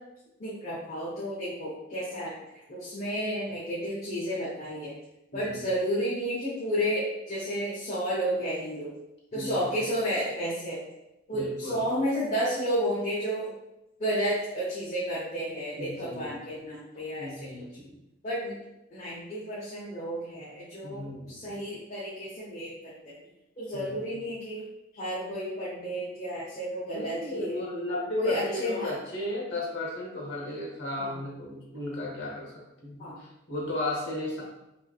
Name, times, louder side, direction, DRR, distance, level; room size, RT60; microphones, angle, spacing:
voice 1, 0.4-2.3 2.7-4.9 5.3-8.9 9.3-10.8 11.3-13.5 14.0-17.3 18.2-18.5 18.9-23.1 23.6-24.7 24.9-27.6 28.2-28.9 31.0-31.1 33.0-33.2, equal, 35° left, -9 dB, 0.8 m, -31 dB
voice 2, 5.3-5.7 9.3-9.8 11.3-11.8 15.8-16.4 16.9-18.0 20.8-21.6 23.7-24.2 26.9-34.4, left 1 dB, 55° left, -4 dB, 1.1 m, -35 dB
3.3 x 3.1 x 2.4 m, 0.92 s
head